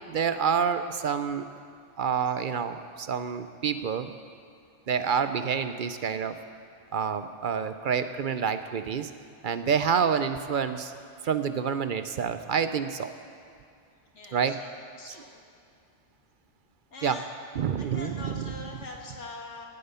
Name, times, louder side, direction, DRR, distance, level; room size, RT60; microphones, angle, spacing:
voice 1, 0.1-1.5 2.0-4.1 4.9-6.4 6.9-9.1 9.4-10.9 11.2-13.1 14.3-14.6 15.1-15.2 17.0-17.2 17.5-18.6, right 7 dB, 55° right, 10 dB, 0.7 m, -28 dB
voice 2, 14.1-14.6 15.0-15.4 16.9-17.3 17.8-19.7, left 3 dB, 90° left, 0 dB, 2.1 m, -42 dB
17.5 x 10.5 x 5.6 m, 2.4 s
omnidirectional pair, 1.2 m